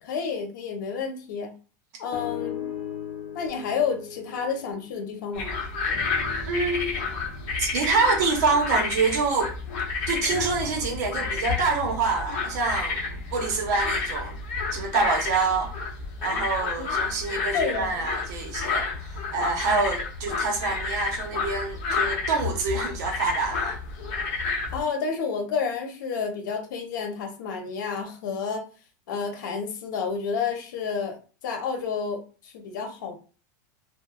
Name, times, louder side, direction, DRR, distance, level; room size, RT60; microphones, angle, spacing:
voice 1, 0.0-1.5 2.0-2.7 3.3-5.5 16.8-16.9 17.3-18.0 24.7-28.6 29.1-31.2 31.4-33.1, left 6 dB, 90° left, 0.8 m, -30 dB
sound 1, 2.1-5.5 5.9-9.6 10.2-14.5 15.1-15.2, left 7 dB, 65° left, 0.7 m, -40 dB
sound 2, 5.3-24.8, left 4 dB, 40° left, 0.9 m, -30 dB
voice 2, 6.5-7.0 7.6-9.5 10.1-14.4 14.7-15.7 16.2-23.8, right 4 dB, 65° right, 0.9 m, -26 dB
3.0 x 2.3 x 2.3 m
supercardioid pair, 175°, 10 cm